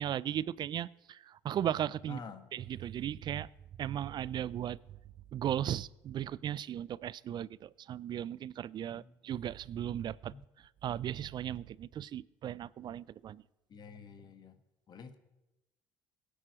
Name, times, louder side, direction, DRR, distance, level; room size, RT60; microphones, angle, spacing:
voice 1, 0.0-2.2 2.5-3.5 3.8-4.8 5.3-10.3 10.8-13.4, right 10 dB, 50° right, 21 dB, 0.4 m, -36 dB
voice 2, 2.1-2.5 8.9-9.1 10.3-10.4 13.7-14.6 14.9-15.2, left 5 dB, 45° left, 8 dB, 1.5 m, -49 dB
23.0 x 10.0 x 3.1 m, 1.0 s
hypercardioid pair, 60°, 10 cm